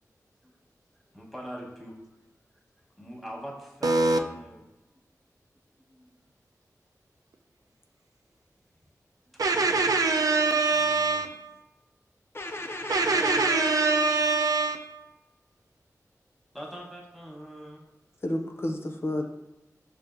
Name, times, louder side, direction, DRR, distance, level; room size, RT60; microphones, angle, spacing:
voice 1, 1.1-1.9 3.0-5.0 5.9-6.1 9.3-9.4 10.7-11.2 16.5-17.8, equal, ahead, -2 dB, 1.0 m, -43 dB
voice 2, 3.8-4.2 9.4-11.5 12.9-15.0, right 3 dB, 85° right, 5 dB, 0.3 m, -24 dB
voice 3, 12.3-14.4 18.2-19.2, left 2 dB, 40° left, 4 dB, 0.4 m, -33 dB
6.4 x 2.5 x 2.5 m, 0.97 s
wide cardioid pair, 70°, 6 cm